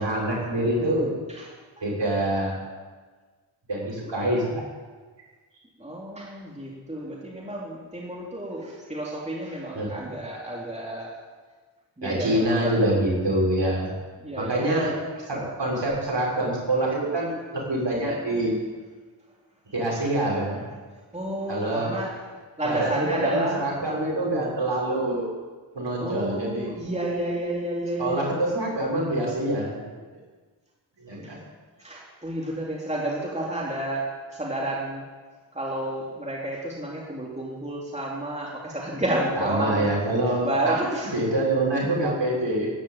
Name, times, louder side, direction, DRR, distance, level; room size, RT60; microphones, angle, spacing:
voice 1, 0.0-1.1 1.8-2.6 3.7-4.6 9.7-10.1 12.0-13.9 14.4-18.6 19.7-20.6 21.5-22.0 22.6-25.3 25.7-26.7 28.0-29.9 31.0-31.4 39.4-40.8 41.1-42.7, right 1 dB, 65° right, -4 dB, 6.8 m, -25 dB
voice 2, 5.8-11.1 12.0-12.8 14.2-14.9 21.1-22.1 22.6-23.6 26.0-28.2 31.1-31.3 31.8-35.0 35.5-39.9 40.3-41.1, right 1 dB, 15° right, -4 dB, 3.3 m, -30 dB
13.5 x 11.5 x 9.0 m, 1.4 s
wide cardioid pair, 95°, 47 cm